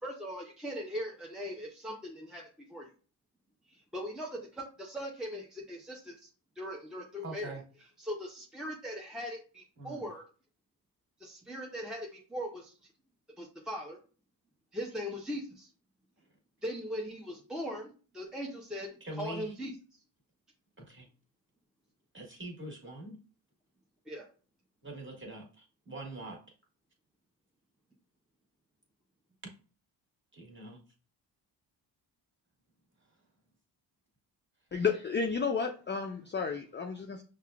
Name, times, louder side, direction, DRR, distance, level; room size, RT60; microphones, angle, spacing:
voice 1, 0.0-2.9 3.7-6.3 6.6-7.6 8.0-10.2 11.2-12.8 13.4-14.0 14.7-15.7 16.6-19.8 24.1-24.3, equal, ahead, -1 dB, 0.8 m, -40 dB
voice 2, 7.2-7.6 9.8-10.0 19.0-19.5 20.8-21.0 22.1-23.2 24.8-26.4 30.3-30.8, right 2 dB, 25° right, -1 dB, 1.6 m, -43 dB
voice 3, 34.7-37.2, left 5 dB, 25° left, 3 dB, 0.4 m, -32 dB
5.5 x 2.4 x 2.3 m, 0.37 s
supercardioid pair, 55°, 48 cm